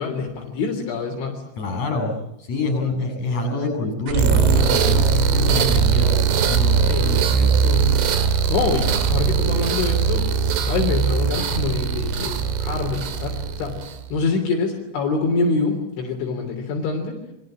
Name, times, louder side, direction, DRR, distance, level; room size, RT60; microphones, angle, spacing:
voice 1, 0.0-1.4 6.9-7.9 8.5-10.3 10.6-13.8 14.1-17.2, left 4 dB, 70° left, 2 dB, 5.6 m, -25 dB
voice 2, 1.6-7.6, left 2 dB, 35° left, 7 dB, 9.2 m, -26 dB
sound 1, 4.1-14.1, right 6 dB, 75° right, 4.8 m, -20 dB
28.0 x 24.0 x 8.8 m, 0.90 s
omnidirectional pair, 5.7 m